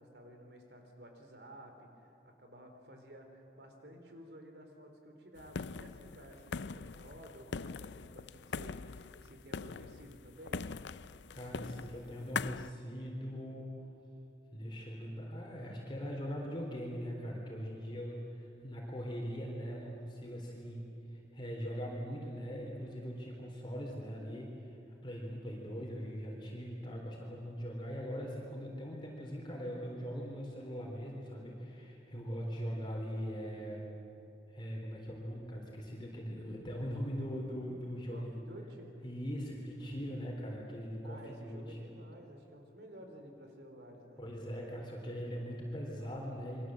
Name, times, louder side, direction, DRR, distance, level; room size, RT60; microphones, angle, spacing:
voice 1, 0.0-10.7 38.1-38.9 41.0-44.2, right 1 dB, 65° right, 4 dB, 4.0 m, -53 dB
sound 1, 5.4-12.7, left 5 dB, 85° left, 0.5 m, -42 dB
voice 2, 11.3-13.7 14.5-20.9 21.1-33.8 34.5-38.3 39.0-41.8 44.2-46.7, equal, 25° left, -2 dB, 3.7 m, -41 dB
28.5 x 23.0 x 7.7 m, 2.8 s
head